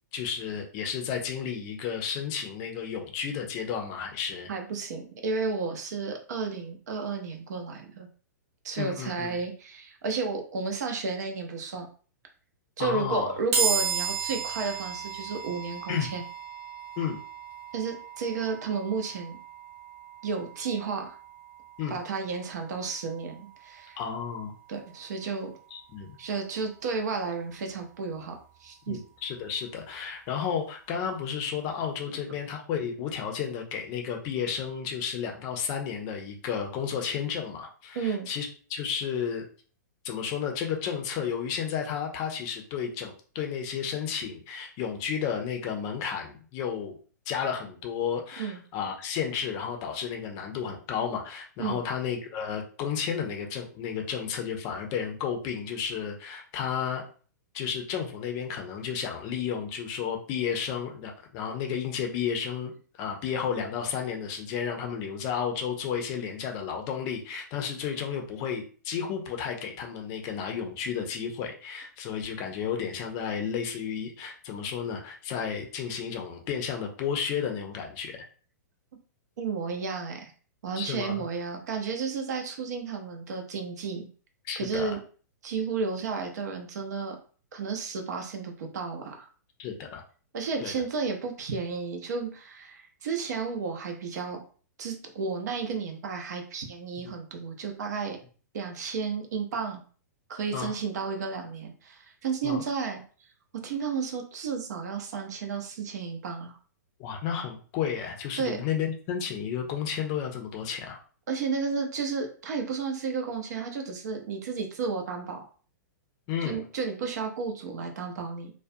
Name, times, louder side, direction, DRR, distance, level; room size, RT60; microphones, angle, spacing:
voice 1, 0.1-4.5 8.8-9.4 12.8-13.4 15.9-16.1 17.0-17.2 21.8-22.0 24.0-24.5 25.7-26.1 28.9-39.5 40.0-47.0 47.3-57.0 57.5-62.7 63.0-78.2 80.8-81.2 84.4-85.0 89.6-90.0 90.6-90.7 100.5-100.8 102.4-102.6 107.0-111.0 116.3-116.6, left 7 dB, 35° left, 2 dB, 0.5 m, -32 dB
voice 2, 4.5-8.1 8.6-11.9 12.8-16.2 17.7-19.4 20.2-21.2 21.9-24.0 24.7-25.5 26.2-28.3 28.6-29.0 37.9-38.3 48.4-48.6 51.6-51.8 79.4-80.3 80.6-84.1 84.6-85.0 85.4-87.2 87.5-89.3 90.3-94.4 94.8-98.2 98.5-99.8 100.3-103.0 103.6-106.6 108.4-108.6 111.3-115.4 116.4-118.5, right 5 dB, 65° right, 3 dB, 0.6 m, -32 dB
sound 1, 13.5-26.9, right 6 dB, 45° right, 0.9 m, -36 dB
2.3 x 2.1 x 2.6 m, 0.41 s
hypercardioid pair, 115°, 10 cm